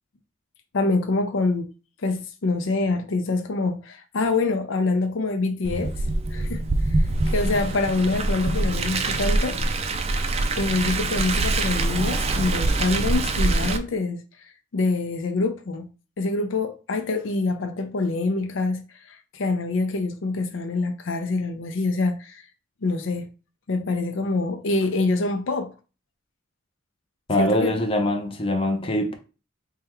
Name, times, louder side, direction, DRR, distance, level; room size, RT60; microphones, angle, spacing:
voice 1, 0.7-1.7 2.0-5.9 6.3-6.6 7.0-9.6 10.6-15.9 16.2-22.4 22.8-23.3 23.7-25.7 27.4-27.8, left 3 dB, 70° left, 0.5 m, -25 dB
Car, 5.6-13.8, right 2 dB, 30° right, 0.4 m, -24 dB
voice 2, 27.3-29.1, left 1 dB, 30° left, 0.6 m, -23 dB
3.5 x 2.2 x 4.3 m
head